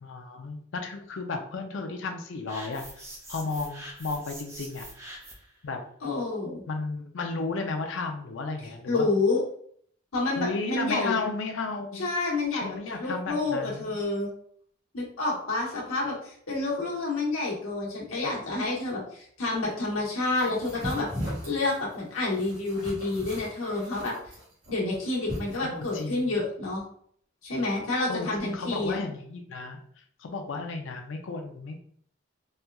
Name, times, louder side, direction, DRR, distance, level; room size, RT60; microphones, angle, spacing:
voice 1, 0.0-4.9 5.6-5.8 6.7-9.1 10.4-12.1 12.5-13.9 20.5-20.6 25.6-26.3 28.1-29.8 30.2-31.8, left 3 dB, 65° left, 4 dB, 0.4 m, -34 dB
sound 1, 2.5-5.5, right 1 dB, 15° right, 0.6 m, -44 dB
voice 2, 6.0-6.6 8.9-9.4 10.1-11.2 12.0-14.3 14.9-21.1 21.4-24.1 24.7-26.8 27.4-29.0, left 2 dB, 90° left, -4 dB, 1.1 m, -29 dB
sound 2, 20.3-26.1, equal, 70° right, 1.3 m, -38 dB
4.2 x 2.3 x 2.3 m, 0.62 s
head